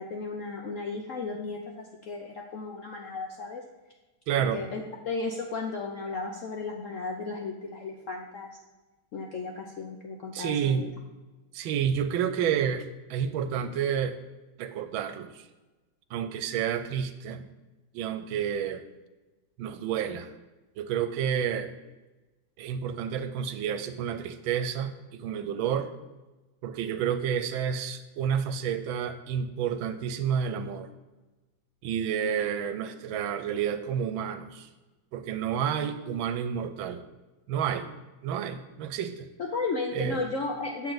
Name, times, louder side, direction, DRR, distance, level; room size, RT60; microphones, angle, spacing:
voice 1, 0.0-3.6 4.4-8.6 9.1-10.9 39.4-40.9, left 3 dB, 70° left, 1 dB, 0.7 m, -34 dB
voice 2, 4.3-4.6 10.3-10.9 11.5-14.2 14.6-15.4 16.1-17.5 17.9-18.8 19.6-20.3 20.8-21.7 22.6-25.9 26.6-30.9 31.8-34.7 35.1-37.0 37.5-37.9 38.2-39.3 39.9-40.2, right 8 dB, 90° right, 10 dB, 1.4 m, -30 dB
7.8 x 6.8 x 3.9 m, 1.2 s
omnidirectional pair, 2.1 m